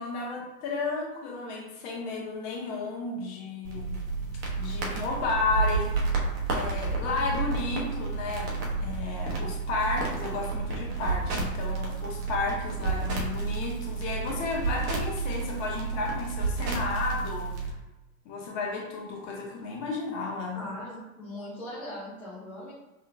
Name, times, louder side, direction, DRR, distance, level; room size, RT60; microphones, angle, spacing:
voice 1, 0.0-4.0 4.6-5.9 6.5-17.7 18.2-20.7, left 3 dB, 35° left, -1 dB, 1.2 m, -33 dB
sound 1, 3.6-17.7, right 4 dB, 40° right, 1.1 m, -31 dB
voice 2, 20.5-22.7, left 1 dB, 5° left, -9 dB, 0.3 m, -40 dB
5.6 x 3.1 x 2.3 m, 0.99 s
figure-of-eight pair, 100°, 44 cm